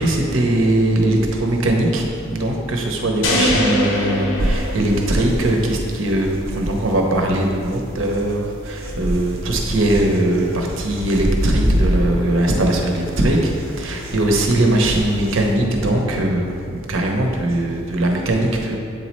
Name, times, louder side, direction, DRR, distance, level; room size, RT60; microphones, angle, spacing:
voice 1, 0.0-18.8, right 1 dB, 80° right, 1 dB, 0.8 m, -20 dB
sound 1, 3.2-5.5, left 1 dB, 70° left, 0.8 m, -22 dB
sound 2, 4.4-15.5, equal, 45° right, 0.6 m, -27 dB
sound 3, 9.2-14.8, left 2 dB, 25° left, 0.3 m, -36 dB
7.7 x 4.2 x 3.1 m, 2.4 s
head